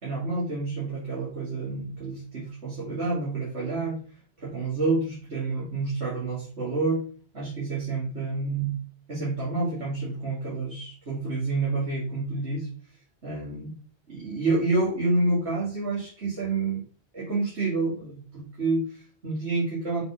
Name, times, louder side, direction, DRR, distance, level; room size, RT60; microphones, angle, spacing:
voice 1, 0.0-4.0 4.4-7.0 7.3-8.8 9.1-12.7 13.2-13.7 14.1-16.8 17.1-20.0, right 3 dB, 85° right, -7 dB, 2.6 m, -28 dB
5.7 x 4.2 x 5.8 m, 0.42 s
omnidirectional pair, 1.1 m